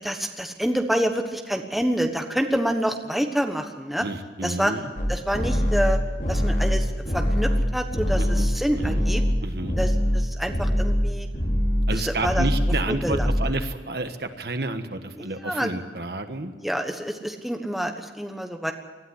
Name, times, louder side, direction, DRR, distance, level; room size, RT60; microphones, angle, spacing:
voice 1, 0.0-4.0 4.4-4.7 5.1-6.0 6.3-9.2 9.8-11.3 11.9-12.4 12.9-13.3 15.2-15.7 16.6-18.7, equal, ahead, 4 dB, 1.3 m, -27 dB
voice 2, 4.0-4.9 8.2-9.0 9.4-9.8 11.9-16.5, right 2 dB, 60° right, 7 dB, 1.5 m, -30 dB
sound 1, 5.0-10.2 10.5-11.1 11.3-11.9 12.2-12.8 13.1-13.5, equal, 45° left, 3.4 m, -23 dB
20.0 x 13.5 x 9.9 m, 1.4 s
head